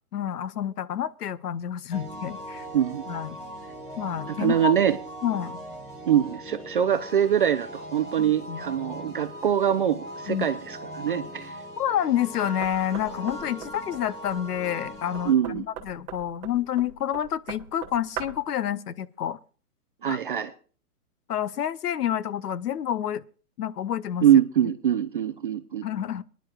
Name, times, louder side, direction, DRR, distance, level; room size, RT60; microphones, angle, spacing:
voice 1, 0.1-2.7 3.1-3.3 4.0-4.8 5.2-5.6 8.2-8.6 10.3-10.5 11.8-19.4 20.1-20.2 21.3-23.2 23.6-24.3 25.8-26.2, left 10 dB, 85° left, 0.8 m, -29 dB
sound 1, 1.9-15.3, equal, 15° left, 1.8 m, -40 dB
voice 2, 4.4-5.0 6.1-11.6 15.3-15.6 20.0-20.5 24.2-25.9, right 9 dB, 35° right, 0.5 m, -23 dB
Knock, 12.6-18.5, right 8 dB, 15° right, 1.0 m, -41 dB
23.0 x 10.5 x 2.4 m
hypercardioid pair, 155°, 46 cm